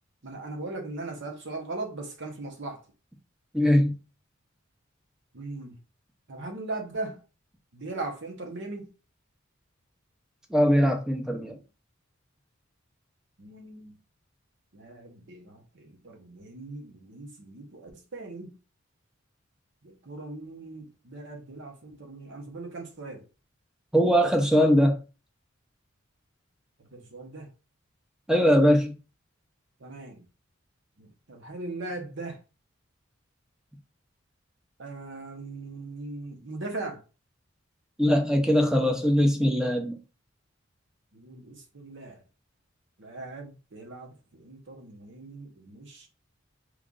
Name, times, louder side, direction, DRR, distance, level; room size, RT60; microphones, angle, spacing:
voice 1, 0.2-2.8 5.3-5.8 6.3-7.2 7.7-8.9 13.4-13.9 14.7-18.5 19.8-23.2 26.8-27.5 29.8-30.2 31.0-32.4 34.8-37.0 41.1-42.2 43.0-46.1, right 2 dB, 60° right, 0.9 m, -39 dB
voice 2, 3.5-3.9 10.5-11.6 23.9-25.0 28.3-29.0 38.0-40.0, equal, 5° right, 0.6 m, -21 dB
3.0 x 2.5 x 3.8 m
head